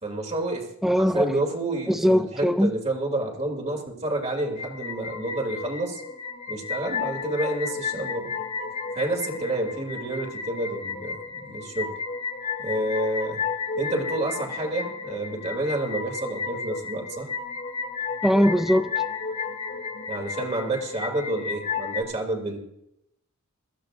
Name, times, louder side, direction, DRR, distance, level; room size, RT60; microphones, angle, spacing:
voice 1, 0.0-6.0 6.5-8.3 8.9-11.9 12.6-13.4 13.8-17.3 20.1-22.6, right 1 dB, 30° right, 0 dB, 2.7 m, -29 dB
voice 2, 0.8-1.3 1.9-2.7 18.2-18.9, equal, ahead, 11 dB, 0.5 m, -20 dB
sound 1, 4.4-22.0, left 5 dB, 35° left, 1.8 m, -33 dB
22.0 x 15.0 x 2.6 m, 0.78 s
head